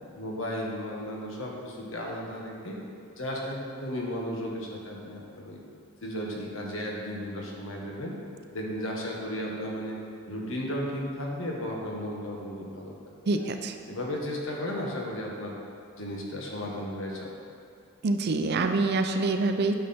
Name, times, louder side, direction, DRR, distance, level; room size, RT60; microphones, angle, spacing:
voice 1, 0.1-2.8 3.1-5.6 6.0-8.2 8.5-10.0 10.2-12.9 13.3-13.5 13.9-15.5 16.0-17.3, equal, 75° left, -2 dB, 1.4 m, -34 dB
voice 2, 13.3-13.7 18.0-19.8, right 3 dB, 55° right, 6 dB, 0.5 m, -26 dB
9.4 x 5.9 x 4.3 m, 2.5 s
head